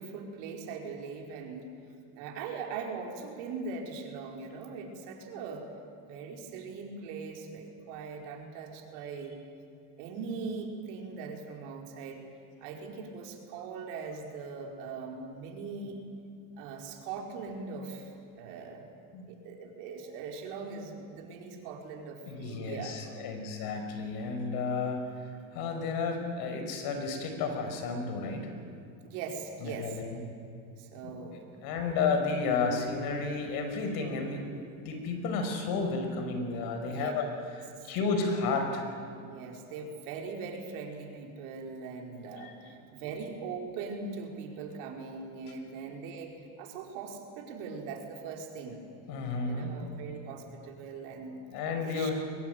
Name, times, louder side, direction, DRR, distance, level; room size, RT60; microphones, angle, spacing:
voice 1, 0.0-1.7 2.1-5.7 6.0-9.4 10.0-12.2 12.6-16.0 16.6-18.8 19.3-23.0 29.0-30.0 30.8-31.4 31.9-32.0 36.9-37.1 39.2-48.8 49.4-51.5 51.8-52.1, right 5 dB, 70° right, 2 dB, 4.7 m, -41 dB
voice 2, 22.3-25.0 25.5-28.5 29.6-30.2 31.6-37.2 37.8-38.9 42.4-42.5 49.1-49.7 51.5-52.1, left 4 dB, 65° left, 5 dB, 5.6 m, -32 dB
23.0 x 21.0 x 9.4 m, 2.6 s
supercardioid pair, 115°, 40 cm